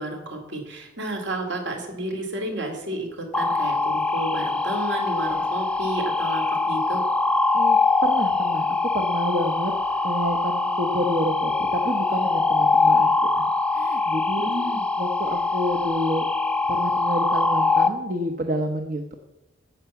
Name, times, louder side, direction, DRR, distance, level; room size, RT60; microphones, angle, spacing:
voice 1, 0.0-7.0 14.4-14.8, right 1 dB, 60° right, 3 dB, 2.5 m, -31 dB
sound 1, 3.3-17.9, left 3 dB, 5° left, 0.6 m, -23 dB
voice 2, 7.5-9.7 10.0-13.5 13.7-14.5 15.0-16.3 16.7-19.1, equal, 45° right, 4 dB, 0.9 m, -29 dB
16.0 x 5.8 x 7.1 m, 1.0 s
head